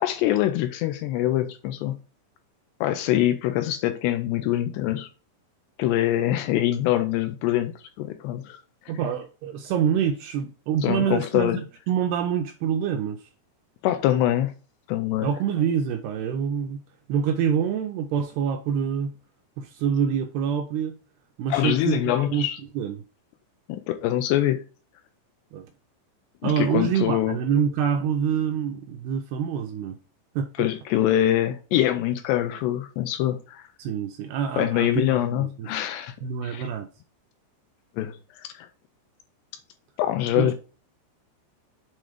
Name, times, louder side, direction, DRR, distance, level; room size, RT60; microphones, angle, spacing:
voice 1, 0.0-1.9 2.8-5.1 5.8-7.7 8.0-8.6 10.8-11.6 13.8-14.5 14.9-15.3 21.5-22.6 23.7-24.6 26.4-27.4 30.6-33.6 34.6-36.1 36.4-36.6 38.0-38.7 40.0-40.5, left 13 dB, 80° left, 2.6 m, -24 dB
voice 2, 8.9-11.6 11.9-13.2 15.2-16.8 17.1-19.1 19.6-21.0 21.4-22.5 22.8-23.0 25.5-25.7 26.4-30.0 30.4-30.5 33.8-35.7 36.2-36.9 40.4-40.5, right 8 dB, 80° right, 2.3 m, -26 dB
7.8 x 3.8 x 4.9 m
omnidirectional pair, 5.1 m